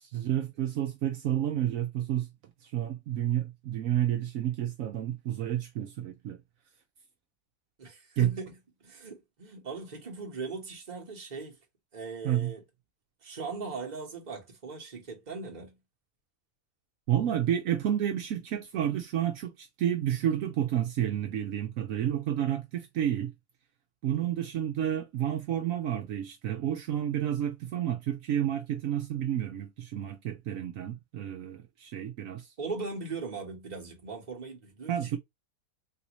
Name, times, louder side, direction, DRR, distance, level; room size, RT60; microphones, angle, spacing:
voice 1, 0.1-2.3 2.6-6.4 8.2-8.3 12.2-12.5 17.1-23.3 24.0-32.5 34.9-35.2, right 11 dB, 75° right, 1.0 m, -30 dB
voice 2, 7.8-11.6 11.9-12.6 13.2-15.8 32.6-35.2, right 4 dB, 30° right, 1.2 m, -39 dB
3.4 x 2.7 x 2.9 m
omnidirectional pair, 1.5 m